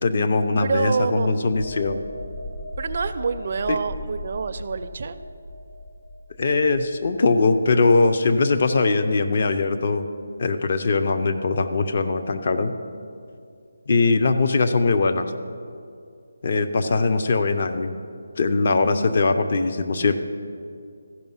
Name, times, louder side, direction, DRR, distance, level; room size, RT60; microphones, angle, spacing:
voice 1, 0.0-2.0 3.7-3.8 6.4-10.1 10.4-12.7 13.9-15.3 16.4-17.9 18.4-20.1, left 3 dB, 45° left, 8 dB, 0.6 m, -21 dB
voice 2, 0.6-1.5 2.8-5.2 16.8-17.1, right 5 dB, 45° right, 11 dB, 0.4 m, -27 dB
sound 1, 1.5-8.9 9.3-9.5, left 1 dB, 70° left, 2.8 m, -38 dB
14.5 x 5.3 x 5.6 m, 2.4 s
figure-of-eight pair, 170°, 0 cm